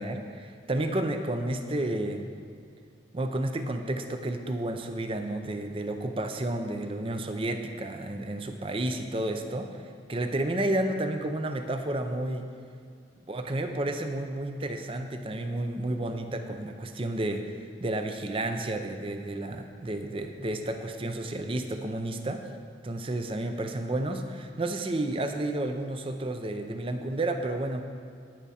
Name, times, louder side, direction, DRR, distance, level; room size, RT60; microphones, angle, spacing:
voice 1, 0.0-2.3 3.1-12.5 13.3-22.4 22.8-27.8, right 1 dB, 30° right, 6 dB, 0.6 m, -31 dB
10.5 x 9.9 x 4.2 m, 2.2 s
head